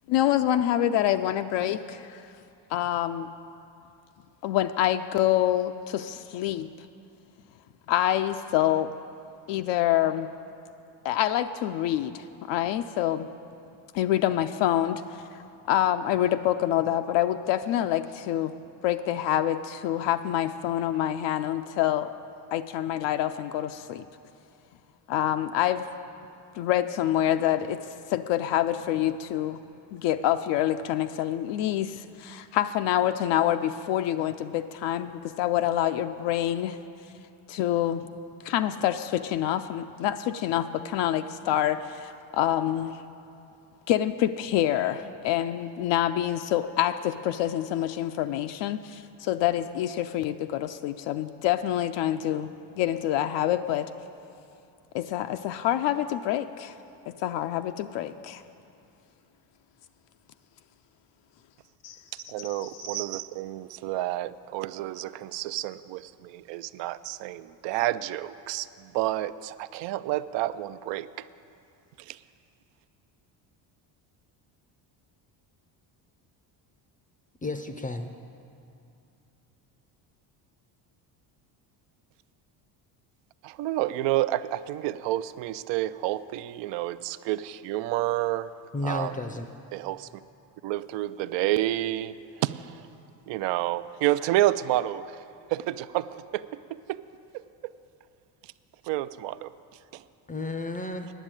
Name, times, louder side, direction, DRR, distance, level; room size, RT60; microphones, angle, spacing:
voice 1, 0.1-2.3 2.7-3.3 4.4-6.7 7.9-8.9 9.5-10.3 11.0-13.3 13.9-15.4 15.7-18.5 18.8-22.1 22.5-24.0 25.1-25.9 26.5-27.8 28.1-29.6 29.9-36.8 37.5-38.0 38.4-43.0 43.9-52.5 52.8-53.9 54.9-56.7 57.1-58.4 61.8-62.0 62.6-62.7, left 12 dB, 70° left, 8 dB, 0.5 m, -26 dB
voice 2, 62.1-71.3 72.0-72.2 83.4-88.5 88.8-89.1 89.7-90.1 90.6-92.9 93.3-95.2 95.5-97.0 97.3-97.7 98.4-98.5 98.8-99.5 99.9-100.0, right 15 dB, 70° right, 15 dB, 0.5 m, -30 dB
voice 3, 77.4-78.1 88.7-89.5 100.3-101.1, left 2 dB, 20° left, 7 dB, 0.5 m, -32 dB
10.0 x 7.2 x 8.9 m, 2.6 s
cardioid pair, 105°, 46 cm